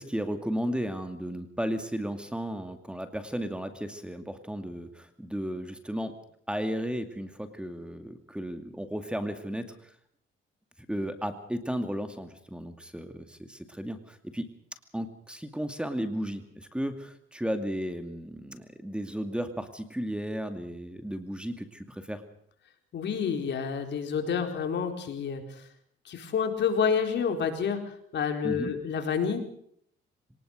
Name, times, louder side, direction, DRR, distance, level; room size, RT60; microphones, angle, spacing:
voice 1, 0.0-6.1 6.5-9.9 10.9-14.5 14.9-22.2 28.4-28.7, equal, 5° right, 8 dB, 2.4 m, -34 dB
voice 2, 22.9-25.4 26.1-27.8 28.1-29.4, left 6 dB, 65° left, 5 dB, 4.3 m, -28 dB
23.0 x 19.5 x 6.5 m, 0.67 s
cardioid pair, 90°, 20 cm